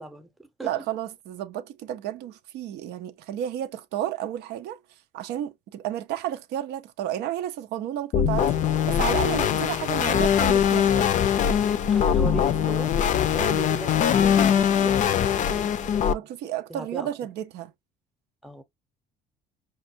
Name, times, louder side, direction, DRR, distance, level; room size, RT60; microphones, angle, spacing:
voice 1, 0.0-0.8 11.9-13.0 13.3-16.2 16.7-17.1 18.4-18.6, right 2 dB, ahead, 0.7 m, -38 dB
voice 2, 0.6-4.8 5.1-8.6 8.9-11.1 13.4-13.7 16.1-17.7, right 11 dB, 80° right, 0.5 m, -32 dB
sound 1, 8.1-16.1, left 8 dB, 50° left, 0.4 m, -22 dB
5.1 x 2.3 x 2.6 m
cardioid pair, 110°, 17 cm